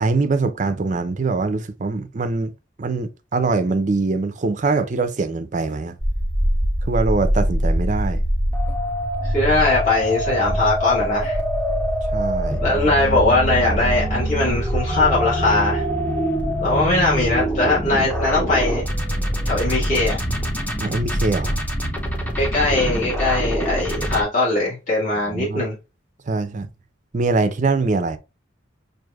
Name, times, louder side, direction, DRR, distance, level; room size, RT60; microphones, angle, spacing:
voice 1, 0.0-2.5 2.8-6.0 6.9-8.2 12.1-12.6 20.8-21.6 25.3-25.6 26.3-26.7 27.1-28.2, right 3 dB, 40° right, 0.4 m, -23 dB
sound 1, 6.0-24.2, equal, 10° left, 0.6 m, -23 dB
voice 2, 9.2-11.4 12.6-15.8 16.6-18.8 19.4-20.2 22.4-25.7, left 2 dB, 40° left, 1.7 m, -20 dB
6.1 x 2.6 x 2.3 m
head